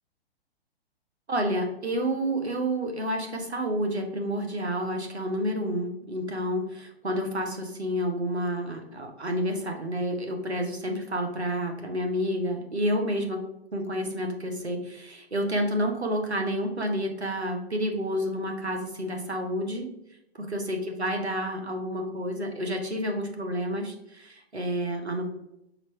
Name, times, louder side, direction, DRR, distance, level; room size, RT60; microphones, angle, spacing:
voice 1, 1.3-13.4 13.7-19.9 20.4-25.3, equal, 85° right, 3 dB, 1.6 m, -29 dB
5.8 x 4.5 x 4.7 m, 0.83 s
figure-of-eight pair, 125°, 32 cm